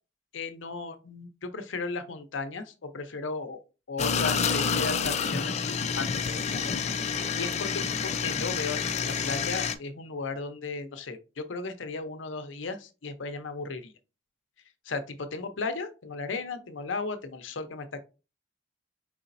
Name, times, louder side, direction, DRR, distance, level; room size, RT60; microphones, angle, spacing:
voice 1, 0.3-3.6 3.9-6.7 7.3-13.9 14.9-18.0, left 4 dB, 80° left, 0.7 m, -35 dB
sound 1, 4.0-9.7, left 6 dB, 35° left, 0.4 m, -28 dB
4.9 x 4.0 x 2.6 m
head